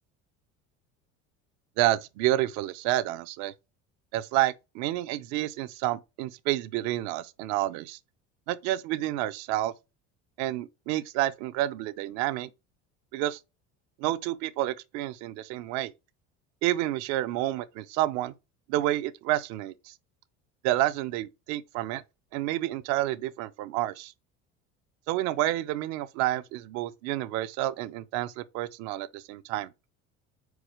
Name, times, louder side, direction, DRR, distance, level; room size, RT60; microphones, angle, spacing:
voice 1, 1.8-3.5 4.1-8.0 8.5-9.7 10.4-12.5 13.1-13.4 14.0-15.9 16.6-18.3 18.7-19.9 20.6-22.0 22.3-24.1 25.1-29.7, right 15 dB, 60° right, 0.7 m, -29 dB
4.8 x 4.6 x 4.9 m
cardioid pair, 165°, 31 cm